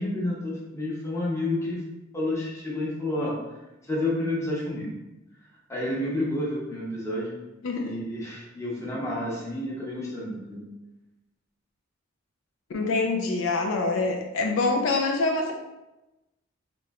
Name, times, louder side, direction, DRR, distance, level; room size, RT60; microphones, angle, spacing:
voice 1, 0.0-1.8 2.1-3.3 3.9-4.9 5.7-7.4 7.8-10.6, left 1 dB, 15° left, -6 dB, 0.8 m, -30 dB
voice 2, 7.6-8.0 12.7-15.5, left 3 dB, 80° left, 2 dB, 0.4 m, -25 dB
3.0 x 3.0 x 2.3 m, 1.0 s
head